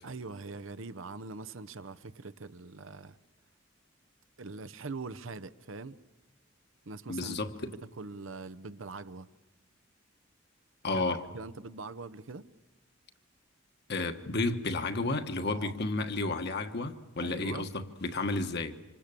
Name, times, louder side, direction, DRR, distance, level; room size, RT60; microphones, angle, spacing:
voice 1, 0.0-3.2 4.4-6.0 6.9-7.3 7.6-9.3 10.9-11.0 11.3-12.5 15.5-15.7 17.2-17.7, right 3 dB, 75° right, 0.9 m, -42 dB
voice 2, 7.1-7.5 10.8-11.2 13.9-18.7, left 2 dB, 55° left, 1.4 m, -32 dB
27.0 x 26.0 x 6.9 m
head